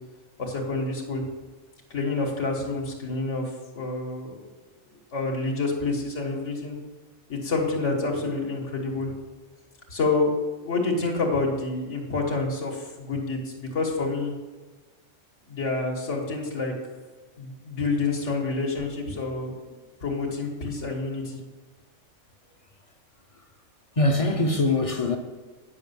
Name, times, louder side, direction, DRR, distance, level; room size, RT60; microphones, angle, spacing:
voice 1, 0.4-1.2 1.9-4.4 5.1-6.8 7.3-9.1 9.9-10.4 10.6-14.3 15.5-16.7 17.4-19.6 20.0-21.4, left 3 dB, 65° left, 1.8 m, -28 dB
voice 2, 23.9-25.2, left 2 dB, 30° left, 0.7 m, -23 dB
9.8 x 5.5 x 6.9 m
omnidirectional pair, 1.3 m